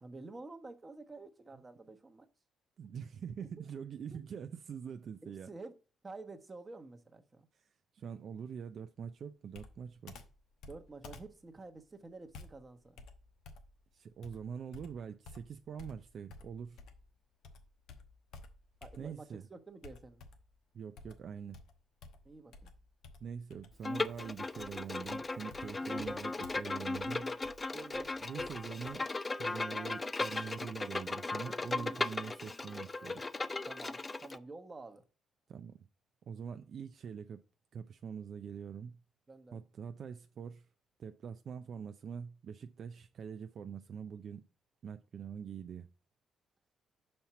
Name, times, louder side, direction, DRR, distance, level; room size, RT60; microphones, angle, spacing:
voice 1, 0.0-2.3 4.1-4.2 5.2-5.7 6.0-7.5 10.7-13.0 18.8-20.2 22.2-22.7 25.8-26.2 27.7-28.1 31.7-32.5 33.7-35.0 39.3-39.6, right 3 dB, 25° right, 1.0 m, -50 dB
voice 2, 2.8-5.5 7.9-10.2 13.9-16.8 19.0-19.4 20.7-21.6 23.2-27.3 28.2-29.1 29.4-33.2 35.5-35.8 36.3-37.4 37.7-39.0 39.5-40.7 41.0-44.4 44.8-45.9, right 7 dB, 60° right, 0.4 m, -44 dB
Computer keyboard, 9.5-17.1 17.4-19.3 19.8-20.6 21.0-29.0, left 3 dB, 80° left, 0.9 m, -54 dB
Bowed string instrument, 23.8-34.4, left 3 dB, 25° left, 0.4 m, -37 dB
5.6 x 4.4 x 5.8 m
cardioid pair, 90°, 0 cm